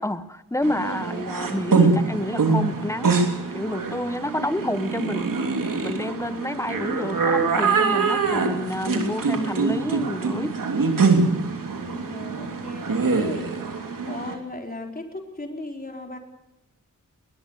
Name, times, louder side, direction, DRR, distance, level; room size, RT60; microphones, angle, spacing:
voice 1, 0.0-3.3 3.5-10.6, left 1 dB, 10° left, 12 dB, 1.3 m, -29 dB
sound 1, 0.6-14.3, right 4 dB, 90° right, 3.3 m, -24 dB
voice 2, 11.7-13.5 14.0-16.2, left 2 dB, 25° left, 2 dB, 4.5 m, -36 dB
21.0 x 20.0 x 6.9 m, 0.95 s
wide cardioid pair, 90°, 32 cm